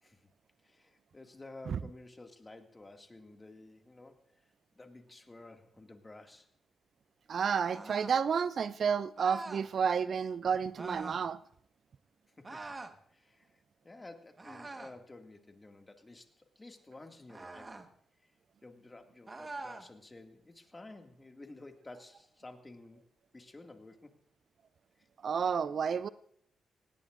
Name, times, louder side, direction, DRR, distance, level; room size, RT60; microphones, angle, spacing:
voice 1, 0.6-4.4 4.7-6.5 12.3-12.8 13.1-17.9 18.2-18.3 18.6-23.1 23.3-24.1 25.0-25.1, left 2 dB, 25° left, 4 dB, 2.1 m, -52 dB
voice 2, 7.3-11.4 25.2-26.1, right 6 dB, 60° right, 17 dB, 0.5 m, -31 dB
sound 1, 7.6-8.2 9.2-9.7 10.7-11.2 12.4-13.0 14.4-15.0 17.3-17.9 19.3-19.9, right 3 dB, 30° right, 1.3 m, -44 dB
18.5 x 17.0 x 2.5 m, 0.67 s
supercardioid pair, 50°, 0 cm